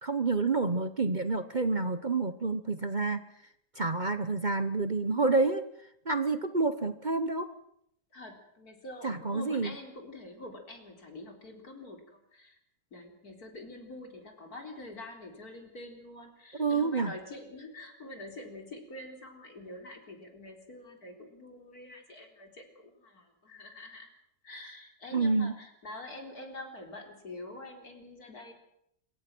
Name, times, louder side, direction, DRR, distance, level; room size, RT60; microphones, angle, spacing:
voice 1, 0.0-3.2 3.7-5.6 6.0-7.5 9.0-9.8 16.5-17.1 25.1-25.5, right 3 dB, 35° right, 10 dB, 1.1 m, -28 dB
voice 2, 8.1-12.6 12.9-24.1 24.4-28.5, left 2 dB, 70° left, 4 dB, 4.3 m, -46 dB
25.5 x 23.5 x 6.2 m, 0.74 s
omnidirectional pair, 1.7 m